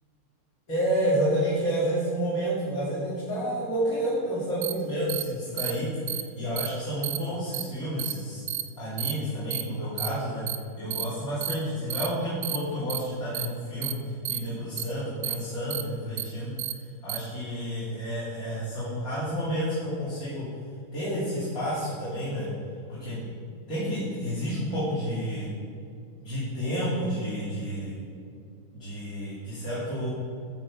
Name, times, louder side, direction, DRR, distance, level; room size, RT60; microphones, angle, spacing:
voice 1, 0.7-8.4 8.8-10.4 10.8-14.0 14.3-16.6 17.0-20.4 20.9-22.5 22.9-23.3 23.7-25.5 26.2-27.9 28.7-30.1, equal, 40° left, -11 dB, 3.5 m, -30 dB
sound 1, 4.6-4.7 5.1-5.2 5.6-5.7 6.1-6.2 6.6-6.7 7.0-7.2 7.5-7.6 8.0-8.1 8.5-8.6 9.0-9.1 9.5-9.6 10.0-10.1 10.5-10.6 10.9-11.0 11.4-11.5 11.9-12.1 12.4-12.6 12.9-13.0 13.3-13.5 13.8-13.9 14.3-14.4 14.8-14.9 15.2-15.4 15.7-15.8 16.2-16.3 16.6-16.7 17.1-17.2, right 13 dB, 80° right, 1.5 m, -30 dB
13.0 x 4.8 x 7.2 m, 2.4 s
omnidirectional pair, 2.2 m